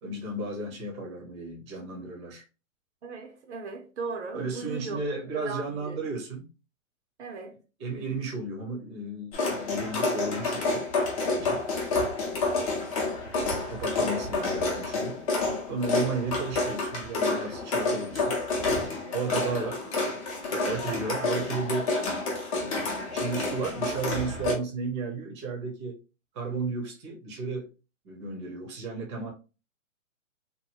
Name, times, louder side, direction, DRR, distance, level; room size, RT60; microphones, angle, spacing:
voice 1, 0.0-2.4 4.3-6.5 7.8-10.8 11.2-11.6 13.6-15.2 15.7-18.4 19.1-19.8 20.5-21.9 22.5-26.0 26.3-27.7 28.0-29.3, right 3 dB, 20° right, 0.7 m, -34 dB
voice 2, 3.0-5.0 5.3-6.0 7.2-7.6 11.8-11.9, right 4 dB, 55° right, 0.7 m, -37 dB
sound 1, 9.3-24.6, left 3 dB, 25° left, 0.7 m, -29 dB
2.9 x 2.6 x 2.7 m
hypercardioid pair, 155°, 40 cm